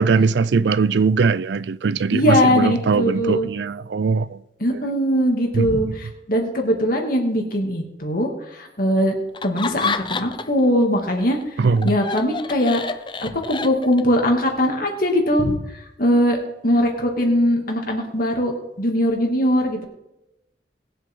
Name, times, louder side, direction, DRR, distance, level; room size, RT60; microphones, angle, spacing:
voice 1, 0.0-4.4 5.5-5.7 11.6-12.0, right 4 dB, 75° right, 0.4 m, -20 dB
voice 2, 2.1-3.5 4.6-9.1 9.4-11.4 11.8-12.8 13.2-15.6 16.0-16.4 16.6-19.8, equal, 55° left, 2.6 m, -20 dB
Laughter, 9.3-10.6 11.0-14.2, left 4 dB, 25° left, 0.6 m, -29 dB
21.0 x 7.8 x 3.8 m
head